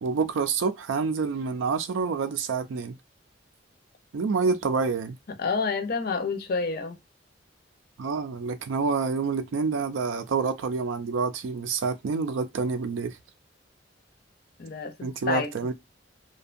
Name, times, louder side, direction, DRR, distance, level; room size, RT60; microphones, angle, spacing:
voice 1, 0.0-3.0 4.1-5.2 8.0-13.2 15.0-15.7, right 4 dB, 85° right, 0.4 m, -27 dB
voice 2, 5.4-7.0 14.6-15.7, left 4 dB, 50° left, 0.5 m, -29 dB
2.6 x 2.2 x 2.4 m
head